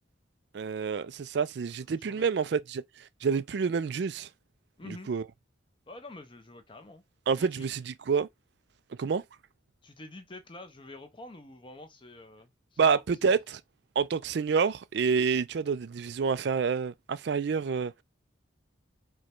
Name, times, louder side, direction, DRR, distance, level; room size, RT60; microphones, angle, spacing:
voice 1, 0.5-2.8 3.2-4.3 4.9-5.2 7.3-8.3 9.0-9.2 12.8-13.4 14.0-17.9, right 5 dB, 60° right, 0.3 m, -28 dB
voice 2, 1.9-2.3 4.8-5.1 5.9-7.0 7.4-7.7 9.8-13.4, left 2 dB, 25° left, 0.6 m, -47 dB
4.9 x 2.2 x 4.4 m
head